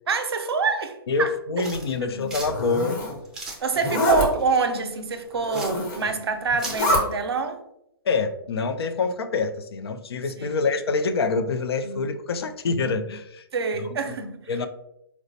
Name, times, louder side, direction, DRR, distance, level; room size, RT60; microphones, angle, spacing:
voice 1, 0.1-1.3 2.0-2.3 3.6-7.6 10.3-10.6 11.8-12.1 13.5-14.5, right 4 dB, 85° right, 0.5 m, -26 dB
voice 2, 1.1-3.0 8.0-13.4 13.8-13.9 14.5-14.7, left 4 dB, 80° left, 0.4 m, -26 dB
sound 1, 1.6-6.8, right 2 dB, 5° right, 0.4 m, -39 dB
Zipper (clothing), 2.4-3.1 3.7-4.3 5.4-6.1 6.5-7.0, left 1 dB, 45° left, 1.0 m, -25 dB
4.1 x 2.1 x 2.7 m
hypercardioid pair, 145°, 13 cm